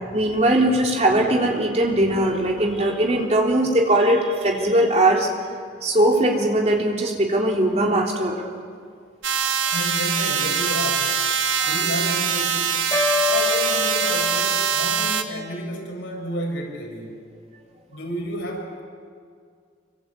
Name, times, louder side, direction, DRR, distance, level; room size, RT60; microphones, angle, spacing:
voice 1, 0.1-5.3 5.8-8.5 11.6-11.7, right 1 dB, 35° right, 0 dB, 3.5 m, -20 dB
sound 1, 9.2-15.2, right 7 dB, 90° right, 1.8 m, -23 dB
voice 2, 9.7-11.3 11.6-12.9 13.3-17.2 17.9-18.8, equal, 85° left, 0 dB, 7.1 m, -31 dB
sound 2, 12.9-15.2, left 4 dB, 15° left, 1.7 m, -26 dB
25.5 x 25.0 x 8.4 m, 2.1 s
head